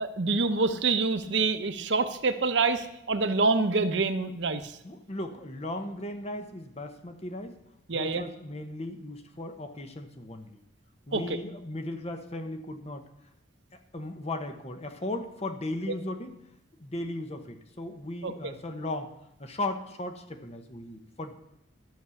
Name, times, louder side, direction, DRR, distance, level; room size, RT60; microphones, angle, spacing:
voice 1, 0.0-4.8 7.9-8.2 11.1-11.4 18.2-18.5, right 3 dB, 70° right, 9 dB, 0.9 m, -26 dB
voice 2, 4.8-7.6 7.9-10.6 11.1-13.1 13.7-16.4 16.8-19.1 19.4-21.3, left 1 dB, 35° left, 7 dB, 1.1 m, -36 dB
12.5 x 6.5 x 7.1 m, 0.84 s
head